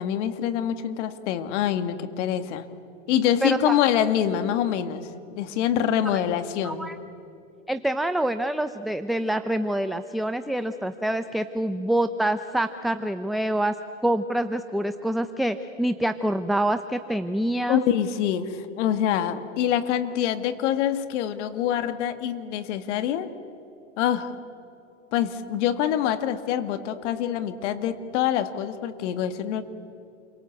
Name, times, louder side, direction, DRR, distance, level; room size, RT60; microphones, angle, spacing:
voice 1, 0.0-2.6 3.1-6.9 17.7-23.3 24.0-24.3 25.1-29.6, left 10 dB, 65° left, 10 dB, 2.1 m, -25 dB
voice 2, 3.4-3.8 6.6-6.9 7.7-13.8 14.0-17.8, right 1 dB, ahead, 9 dB, 0.7 m, -26 dB
29.0 x 24.0 x 8.3 m, 2.6 s
hypercardioid pair, 110°, 38 cm